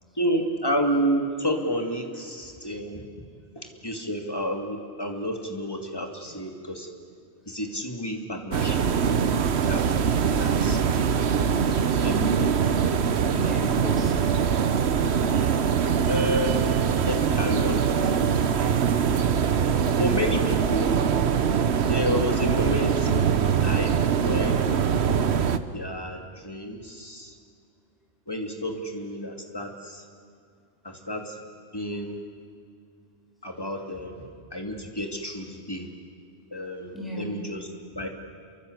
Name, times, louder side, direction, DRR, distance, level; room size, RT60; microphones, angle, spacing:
voice 1, 0.2-3.0 3.6-6.9 7.5-9.3 9.6-10.9 12.0-12.1 16.1-17.8 19.8-21.0 21.9-23.9 24.2-24.7 25.7-27.3 28.3-30.0 30.8-31.4 31.7-32.2 33.4-34.2 34.5-35.9 36.5-38.1, equal, 20° left, 2 dB, 2.7 m, -30 dB
sound 1, 8.5-25.6, right 7 dB, 70° right, 1.2 m, -23 dB
voice 2, 11.9-12.4 13.2-14.5 36.9-37.3, right 1 dB, ahead, -2 dB, 7.1 m, -36 dB
28.5 x 24.0 x 8.2 m, 2.2 s
omnidirectional pair, 1.2 m